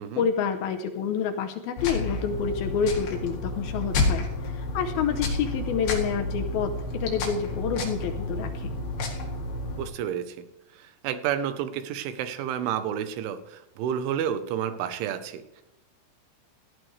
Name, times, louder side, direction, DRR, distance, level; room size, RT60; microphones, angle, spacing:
voice 1, 0.0-8.7, left 7 dB, 75° left, 7 dB, 2.2 m, -28 dB
sound 1, 1.8-9.8, left 2 dB, 60° left, 3.7 m, -30 dB
voice 2, 9.8-10.4 10.8-15.6, right 9 dB, 85° right, 10 dB, 3.4 m, -30 dB
17.5 x 13.0 x 3.3 m, 0.85 s
omnidirectional pair, 5.4 m